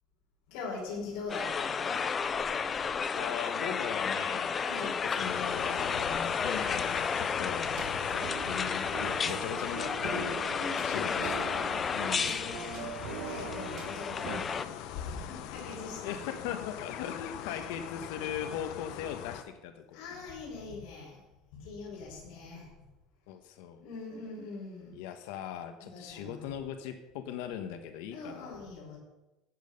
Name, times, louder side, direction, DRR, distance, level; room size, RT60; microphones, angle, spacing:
voice 1, 0.5-2.0 4.5-5.0 10.5-11.2 12.0-16.2 17.4-17.7 19.9-21.3 21.5-22.7 23.8-25.1 25.8-26.4 28.1-29.0, left 4 dB, 75° left, -5 dB, 5.0 m, -42 dB
sound 1, 1.3-14.6, left 6 dB, 20° left, 0.4 m, -32 dB
voice 2, 3.1-7.7 8.1-10.5 10.8-11.7 11.9-12.4 14.2-14.5 16.0-20.3 23.3-23.8 24.9-28.6, left 9 dB, 90° left, 7 dB, 1.1 m, -39 dB
sound 2, 5.2-19.4, left 10 dB, 55° left, 0.8 m, -42 dB
sound 3, 7.8-14.4, right 12 dB, 50° right, 0.9 m, -43 dB
12.5 x 8.7 x 5.3 m, 1.0 s
cardioid pair, 180°, 0 cm